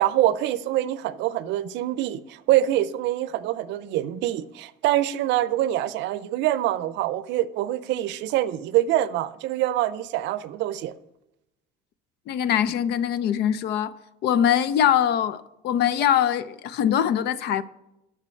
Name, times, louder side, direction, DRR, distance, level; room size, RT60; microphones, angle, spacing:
voice 1, 0.0-10.9, right 13 dB, 70° right, 0.5 m, -25 dB
voice 2, 12.3-13.9 14.2-17.6, left 9 dB, 60° left, 0.5 m, -22 dB
7.5 x 6.7 x 6.3 m
cardioid pair, 130°, 19 cm